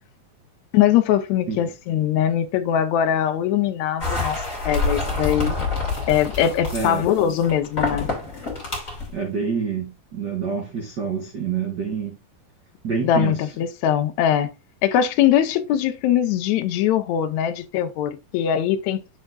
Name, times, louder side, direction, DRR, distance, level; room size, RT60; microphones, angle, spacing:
voice 1, 0.7-5.6 6.1-8.1 13.0-14.5 14.8-19.0, left 10 dB, 80° left, 1.7 m, -21 dB
sound 1, 4.0-9.1, left 3 dB, 25° left, 2.1 m, -27 dB
voice 2, 6.7-7.1 9.1-12.1 12.8-13.5, right 6 dB, 85° right, 0.9 m, -27 dB
10.5 x 3.8 x 2.4 m
omnidirectional pair, 4.0 m